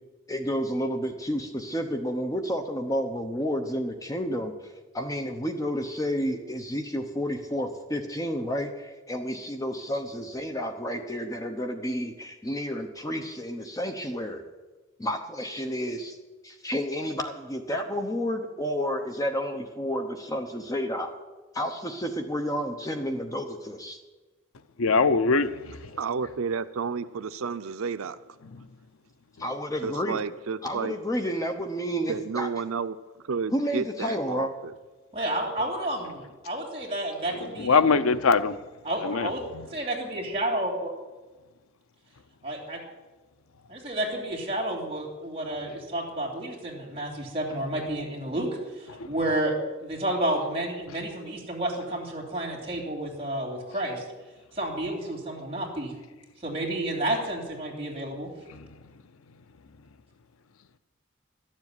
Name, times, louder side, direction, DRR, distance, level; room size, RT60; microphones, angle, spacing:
voice 1, 0.3-14.4 15.0-16.2 16.4-21.1 21.5-24.0 29.4-30.2 30.6-32.5 33.5-34.5, equal, 15° left, 0.9 m, -30 dB
voice 2, 24.8-25.7 37.6-38.6 39.0-39.3, left 4 dB, 80° left, 0.6 m, -21 dB
voice 3, 26.0-28.2 29.8-30.9 32.1-33.0 33.3-34.7, right 5 dB, 80° right, 0.5 m, -31 dB
voice 4, 35.1-37.8 38.8-39.4 39.7-40.9 42.4-42.8 43.7-48.5 48.7-49.5 49.8-54.0 54.5-55.9 56.4-58.3, right 1 dB, 25° right, 3.2 m, -30 dB
13.0 x 7.4 x 9.6 m
head